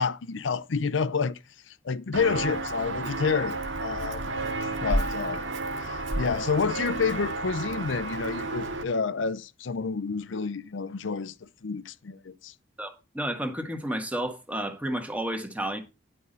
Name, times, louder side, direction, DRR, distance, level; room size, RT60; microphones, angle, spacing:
voice 1, 0.0-1.4 1.7-4.2 4.8-5.4 5.8-11.3 11.6-12.5, left 5 dB, 75° left, 0.6 m, -29 dB
Walk footsteps, 2.1-8.8, right 2 dB, 90° right, 1.8 m, -31 dB
voice 2, 12.8-15.8, right 1 dB, 10° right, 1.5 m, -31 dB
11.0 x 5.5 x 5.4 m
head